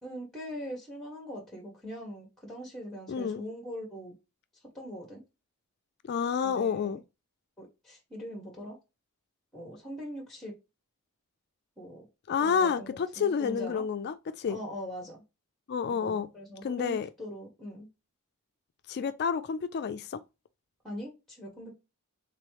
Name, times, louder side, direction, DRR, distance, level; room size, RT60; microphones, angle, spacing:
voice 1, 0.0-4.1 4.7-5.2 6.4-7.0 7.6-8.8 9.5-10.5 11.8-12.1 12.4-13.8 14.5-15.2 15.9-17.9 20.8-21.7, equal, ahead, 1.2 m, -41 dB
voice 2, 3.1-3.4 6.1-7.0 12.3-14.6 15.7-16.3 16.6-17.1 18.9-20.2, left 6 dB, 50° left, 0.3 m, -29 dB
3.7 x 3.0 x 3.0 m
head